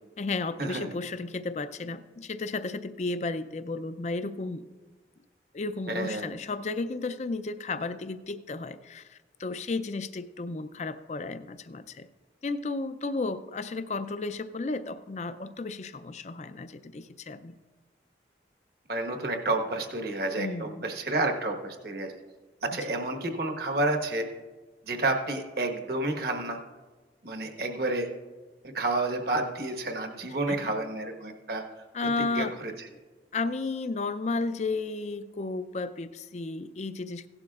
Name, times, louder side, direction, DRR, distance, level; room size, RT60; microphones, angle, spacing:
voice 1, 0.2-4.7 5.5-12.1 12.4-17.6 20.4-20.8 30.5-30.7 31.9-32.5 33.3-37.3, left 3 dB, 40° left, 12 dB, 0.4 m, -33 dB
voice 2, 5.9-6.4 18.9-22.1 22.6-24.3 24.8-26.6 27.2-28.1 28.6-31.6 32.2-32.7, right 2 dB, 60° right, 4 dB, 1.3 m, -30 dB
16.5 x 11.5 x 2.4 m, 1.3 s
head